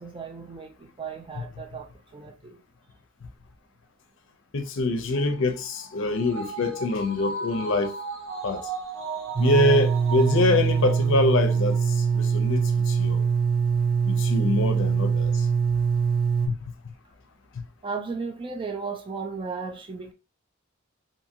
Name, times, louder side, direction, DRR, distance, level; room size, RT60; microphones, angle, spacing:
voice 1, 0.0-2.6 17.8-20.1, right 5 dB, 25° right, 0.4 m, -35 dB
voice 2, 4.5-7.9 8.4-8.6 9.4-13.3 14.1-15.5 16.5-16.6, left 2 dB, 65° left, 0.5 m, -25 dB
sound 1, 5.1-11.8 12.1-12.2, right 4 dB, 90° right, 1.5 m, -36 dB
sound 2, 9.3-16.5, right 6 dB, 50° right, 0.9 m, -23 dB
2.7 x 2.7 x 2.5 m
head